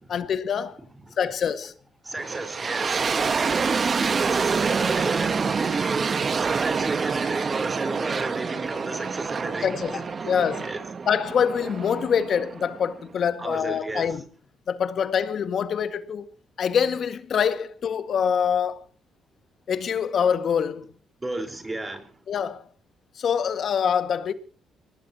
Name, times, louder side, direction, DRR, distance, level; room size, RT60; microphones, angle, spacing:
voice 1, 0.1-0.8 1.2-1.7 9.6-10.0 10.3-10.7 11.1-14.2 14.7-16.2 16.6-18.8 19.7-20.9 22.3-22.7 23.2-24.3, left 7 dB, 60° left, 1.9 m, -25 dB
voice 2, 2.0-10.3 10.6-10.8 13.4-14.2 21.2-22.1, right 2 dB, 20° right, 4.6 m, -33 dB
sound 1, 2.2-13.1, right 5 dB, 40° right, 1.2 m, -27 dB
24.0 x 19.5 x 3.0 m
cardioid pair, 90°, 0 cm